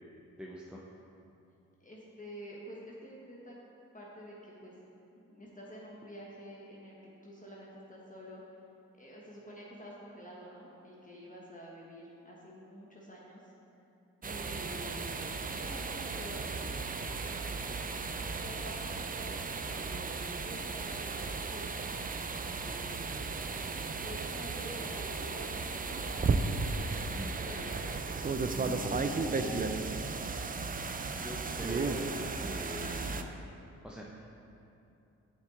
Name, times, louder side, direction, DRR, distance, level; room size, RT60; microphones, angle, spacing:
voice 1, 0.4-0.8 27.0-27.3 28.4-29.9 31.1-33.3 33.8-34.3, equal, 5° right, -4 dB, 0.9 m, -42 dB
voice 2, 1.8-3.5 3.9-4.7 5.1-8.4 9.0-13.5 14.2-16.4 17.7-21.9 22.5-23.0 24.0-27.1 27.3-27.8, equal, 20° left, -5 dB, 1.4 m, -48 dB
sound 1, 14.2-33.2, right 4 dB, 25° right, 0.5 m, -35 dB
7.3 x 6.2 x 3.9 m, 2.8 s
hypercardioid pair, 40°, 37 cm